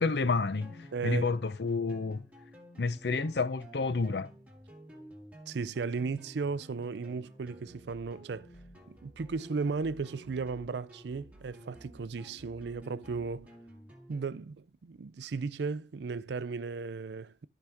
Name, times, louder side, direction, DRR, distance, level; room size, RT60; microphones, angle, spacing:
voice 1, 0.0-2.2 2.8-4.3, left 4 dB, 65° left, 0.6 m, -30 dB
sound 1, 0.6-14.3, equal, 10° right, 2.1 m, -53 dB
voice 2, 0.9-1.3 5.5-8.5 8.9-13.5 14.1-17.5, right 4 dB, 70° right, 0.4 m, -35 dB
13.0 x 4.9 x 3.5 m
head